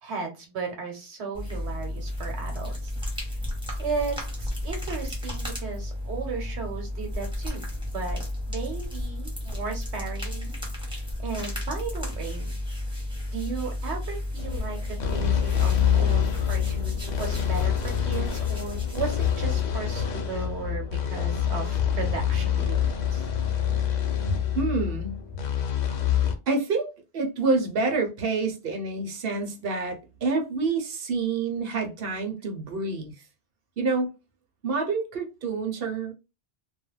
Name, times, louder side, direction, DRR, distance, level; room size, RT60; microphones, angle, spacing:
voice 1, 0.0-2.9 3.8-7.6 7.9-8.2 8.5-10.6 10.9-12.5 13.3-23.5, right 5 dB, 80° right, 1.1 m, -35 dB
sound 1, 1.3-20.2, left 1 dB, 5° right, 0.9 m, -33 dB
sound 2, 14.4-26.3, left 9 dB, 55° left, 0.5 m, -26 dB
voice 2, 24.5-25.2 26.5-33.1 33.8-34.1 34.6-36.1, right 4 dB, 65° right, 0.9 m, -27 dB
2.3 x 2.1 x 3.1 m
omnidirectional pair, 1.1 m